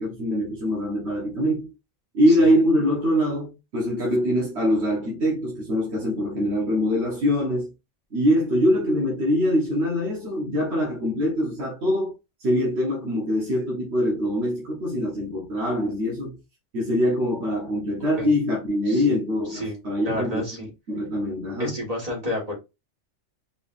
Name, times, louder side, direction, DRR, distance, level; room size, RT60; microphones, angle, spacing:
voice 1, 0.0-1.7 2.1-7.7 8.1-12.1 12.4-16.4 16.7-21.8, equal, 65° right, 1.6 m, -23 dB
voice 2, 20.0-20.7 21.6-22.6, left 1 dB, 30° right, 1.8 m, -29 dB
4.9 x 3.4 x 2.6 m
omnidirectional pair, 1.2 m